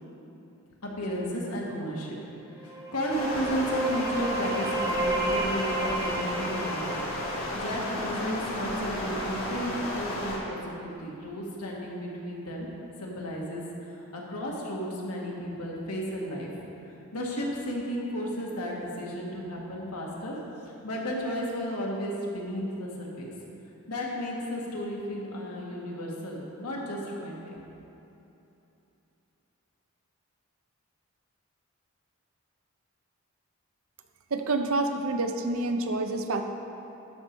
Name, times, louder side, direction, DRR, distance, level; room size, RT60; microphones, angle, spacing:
voice 1, 0.8-2.2 2.5-12.7 13.0-16.5 17.1-20.4 20.7-23.3 23.9-27.6, equal, 90° left, -3 dB, 1.7 m, -33 dB
sound 1, 2.6-8.3, right 2 dB, 15° right, 0.6 m, -32 dB
Stream, 3.1-10.4, left 1 dB, 65° left, 1.7 m, -33 dB
voice 2, 34.3-36.4, right 2 dB, 65° right, 6 dB, 0.6 m, -28 dB
12.5 x 5.3 x 4.5 m, 2.9 s
head